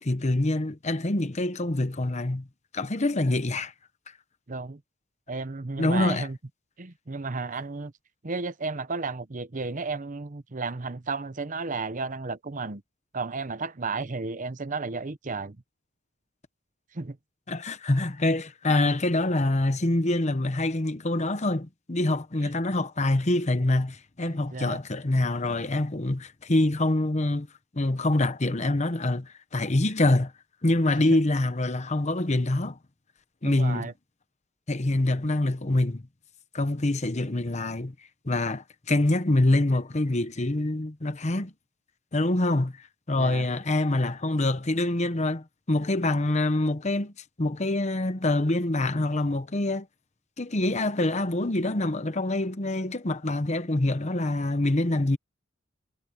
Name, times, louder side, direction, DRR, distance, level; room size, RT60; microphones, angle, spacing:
voice 1, 0.0-2.5 2.7-3.7 5.8-6.3 17.5-27.5 27.7-30.3 30.6-32.8 33.4-33.9 34.7-36.0 36.5-37.9 38.2-41.5 42.1-42.8 43.1-47.1 47.4-49.9 50.4-55.2, left 2 dB, 35° left, 1.0 m, -25 dB
voice 2, 4.5-4.8 5.3-6.4 6.8-7.9 8.2-12.8 13.1-15.6 16.9-17.2 22.4-22.5 24.2-24.8 31.1-31.2 33.4-33.9 43.2-43.5, right 3 dB, 40° right, 0.8 m, -33 dB
head